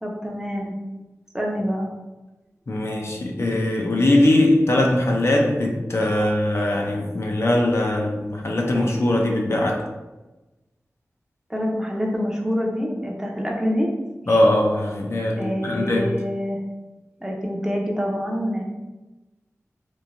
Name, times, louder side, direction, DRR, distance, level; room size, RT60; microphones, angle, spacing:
voice 1, 0.0-0.7 1.3-1.9 6.1-6.3 11.5-13.9 14.3-14.4 15.4-16.6 17.2-18.6, equal, 10° right, -1 dB, 0.5 m, -26 dB
voice 2, 2.7-9.9 14.3-16.1, left 1 dB, 55° left, 0 dB, 0.4 m, -21 dB
3.0 x 2.1 x 2.5 m, 1.1 s
wide cardioid pair, 50°, 5 cm